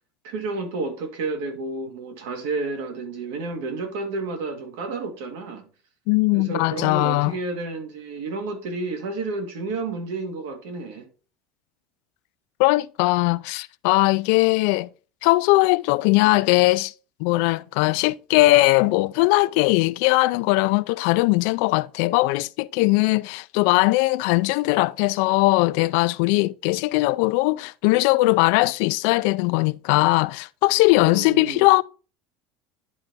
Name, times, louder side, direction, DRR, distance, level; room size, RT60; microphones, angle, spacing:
voice 1, 0.2-5.7 6.3-11.1 31.0-31.7, right 3 dB, 85° right, 2.0 m, -31 dB
voice 2, 6.1-7.3 12.6-14.9 15.2-16.9 17.2-31.8, left 21 dB, 65° left, 0.3 m, -20 dB
10.5 x 3.9 x 3.5 m
cardioid pair, 160°, 0 cm